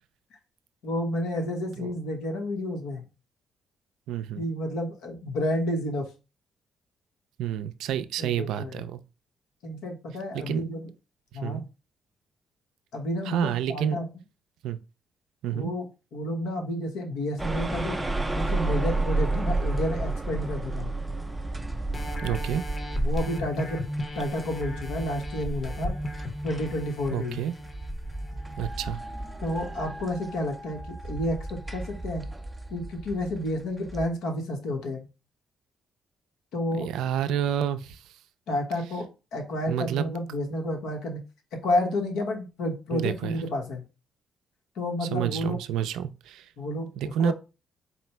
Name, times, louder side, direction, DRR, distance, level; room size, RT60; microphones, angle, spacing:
voice 1, 0.8-3.0 4.4-6.1 8.2-8.9 9.6-10.9 11.3-11.6 12.9-14.1 15.5-18.0 18.3-20.9 23.0-23.8 24.1-25.9 26.4-27.4 29.4-32.3 32.7-35.1 36.5-36.9 38.5-41.2 41.5-43.8 44.8-45.6 46.6-46.9 47.2-47.3, left 1 dB, 85° left, 1.0 m, -30 dB
voice 2, 4.1-4.4 7.4-9.0 10.3-10.6 11.4-11.7 13.3-14.0 14.6-14.8 15.4-15.7 22.2-22.6 27.1-27.5 28.6-29.0 36.8-38.0 39.7-40.1 42.9-43.4 45.1-46.4 47.0-47.3, right 9 dB, 85° right, 0.4 m, -29 dB
sound 1, 17.4-34.1, right 2 dB, 10° right, 0.4 m, -32 dB
sound 2, 21.9-29.1 29.7-29.8, equal, 30° left, 0.9 m, -35 dB
4.2 x 2.0 x 4.3 m
cardioid pair, 90°, 0 cm